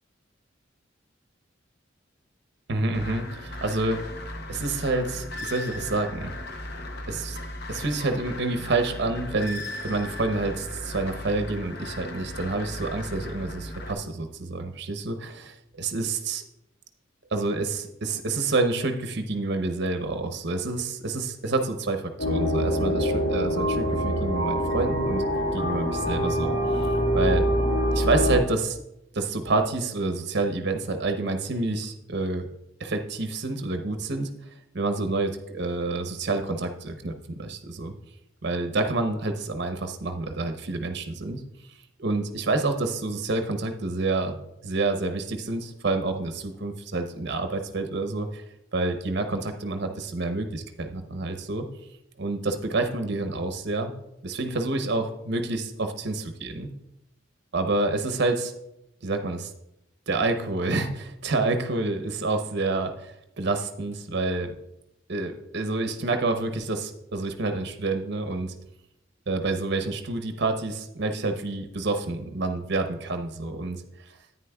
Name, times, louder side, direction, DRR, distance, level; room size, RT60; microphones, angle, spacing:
voice 1, 2.7-4.1 4.5-6.3 7.1-7.4 7.7-16.4 17.3-25.2 25.5-27.5 27.9-28.8 29.1-32.5 32.8-34.3 34.7-37.9 38.4-41.4 42.0-44.4 44.6-48.4 48.7-51.7 52.2-53.9 54.2-56.7 57.5-58.5 59.0-59.5 60.1-64.5 65.1-68.5 69.3-73.8, right 3 dB, 60° right, 6 dB, 0.8 m, -28 dB
sound 1, 2.9-13.9, left 1 dB, 55° left, 0.8 m, -37 dB
sound 2, 22.2-28.4, equal, 75° left, 1.9 m, -25 dB
9.9 x 9.1 x 2.3 m, 0.84 s
head